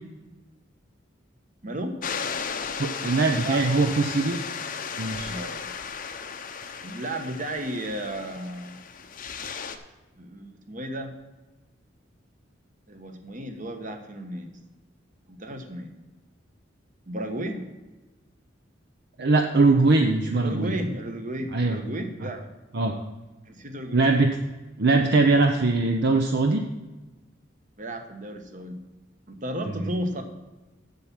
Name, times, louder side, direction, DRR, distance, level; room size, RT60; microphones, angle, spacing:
voice 1, 1.6-2.0 3.4-3.9 5.2-5.7 6.8-8.8 10.2-11.1 12.9-14.5 15.3-15.9 17.1-17.6 20.3-22.5 23.4-24.1 27.8-28.8 29.3-30.2, right 1 dB, 45° right, 5 dB, 1.2 m, -33 dB
sound 1, 2.0-9.8, left 6 dB, 45° left, 0.8 m, -35 dB
voice 2, 2.8-4.4 5.0-5.3 19.2-20.7 21.5-21.8 22.7-22.9 23.9-24.4 24.8-26.6, right 3 dB, 60° right, 3 dB, 0.7 m, -21 dB
7.9 x 7.2 x 7.4 m, 1.1 s
head